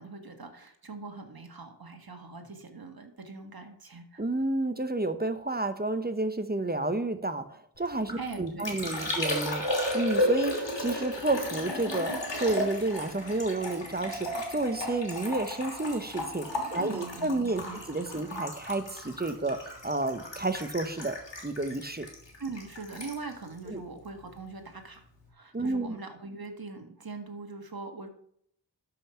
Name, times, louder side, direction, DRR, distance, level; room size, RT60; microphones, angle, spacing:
voice 1, 0.0-4.2 8.2-9.0 16.6-17.8 18.1-18.2 22.4-28.1, right 4 dB, 55° right, 5 dB, 1.7 m, -42 dB
voice 2, 4.2-21.2 21.4-22.1 23.7-23.8 25.5-25.9, right 2 dB, 20° right, 10 dB, 1.0 m, -31 dB
Liquid, 7.9-24.5 24.7-25.3, left 1 dB, 85° left, 3.1 m, -34 dB
12.5 x 5.8 x 5.7 m, 0.68 s
wide cardioid pair, 50°, 42 cm